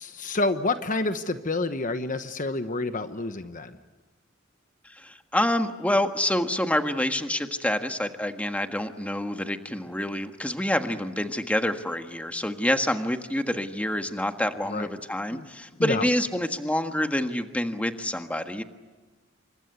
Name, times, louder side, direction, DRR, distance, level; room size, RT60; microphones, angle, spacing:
voice 1, 0.0-3.8 14.7-14.9 15.3-15.5 15.8-16.1, left 2 dB, 40° left, 9 dB, 1.1 m, -28 dB
voice 2, 4.8-18.6, left 1 dB, 5° left, 6 dB, 1.5 m, -27 dB
28.5 x 25.0 x 8.1 m, 1.3 s
head